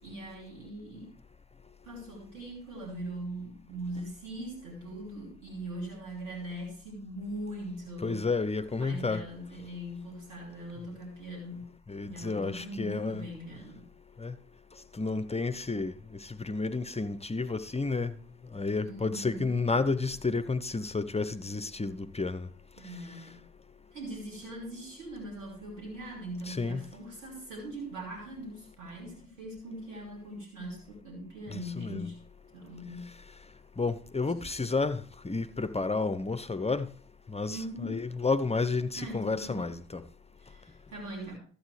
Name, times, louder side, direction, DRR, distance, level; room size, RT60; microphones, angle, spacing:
voice 1, 0.0-1.1 1.8-8.2 8.8-11.7 12.0-13.8 18.8-19.5 22.8-23.4 23.9-32.2 32.5-33.1 34.3-34.4 37.5-38.0 39.0-39.7 40.4-41.4, right 1 dB, 80° right, 2.9 m, -41 dB
voice 2, 8.0-9.3 11.9-13.3 14.2-14.4 14.7-18.2 18.5-22.5 22.8-23.3 26.4-26.9 31.5-32.1 33.0-33.2 33.8-36.9 37.3-40.0, left 3 dB, 15° left, 0.7 m, -31 dB
13.0 x 8.4 x 3.2 m
hypercardioid pair, 45°, 40 cm